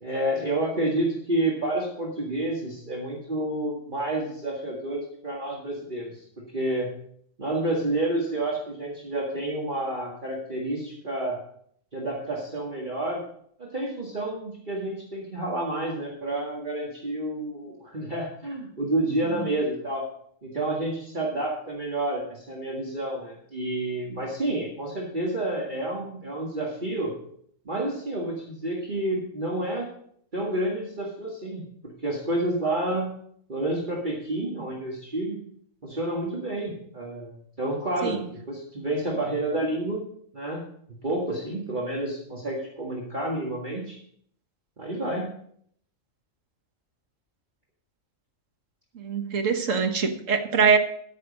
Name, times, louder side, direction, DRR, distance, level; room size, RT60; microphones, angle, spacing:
voice 1, 0.0-6.2 6.5-6.9 7.4-11.4 11.9-13.2 13.6-20.1 20.4-27.1 27.7-29.9 30.3-33.1 33.5-35.4 35.8-38.2 38.5-40.0 40.3-40.6 41.0-44.0 44.8-45.3, right 1 dB, 35° right, -3 dB, 2.0 m, -29 dB
voice 2, 48.9-50.8, right 5 dB, 70° right, 5 dB, 1.6 m, -23 dB
13.5 x 6.5 x 5.2 m, 0.65 s
omnidirectional pair, 1.4 m